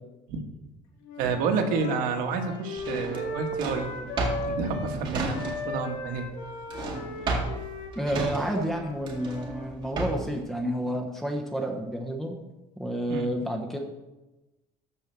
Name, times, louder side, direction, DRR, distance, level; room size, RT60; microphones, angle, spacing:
Wind instrument woodwind instrument, 1.0-4.9 5.3-9.7, left 2 dB, 75° left, 2.5 m, -37 dB
voice 1, 1.2-3.9 4.4-6.3 13.1-13.3, right 5 dB, 70° right, 4 dB, 1.5 m, -29 dB
Drawer open or close, 2.8-5.9 6.1-10.4, right 2 dB, 30° right, 2.1 m, -33 dB
voice 2, 7.9-12.4 12.8-13.8, equal, ahead, 2 dB, 1.1 m, -30 dB
13.0 x 4.4 x 6.8 m, 1.0 s
cardioid pair, 165°, 15 cm